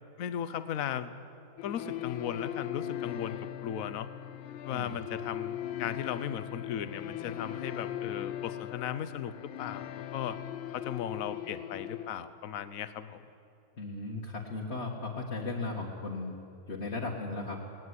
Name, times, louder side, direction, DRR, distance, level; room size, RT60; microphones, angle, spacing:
voice 1, 0.2-1.2 1.6-4.1 4.6-9.3 9.6-10.4 10.7-13.2, left 9 dB, 55° left, 12 dB, 1.0 m, -36 dB
sound 1, 1.6-12.1, left 11 dB, 90° left, 1.6 m, -39 dB
voice 2, 13.8-16.3 16.7-17.6, left 3 dB, 35° left, -3 dB, 1.9 m, -36 dB
19.0 x 18.5 x 9.7 m, 2.5 s
omnidirectional pair, 2.2 m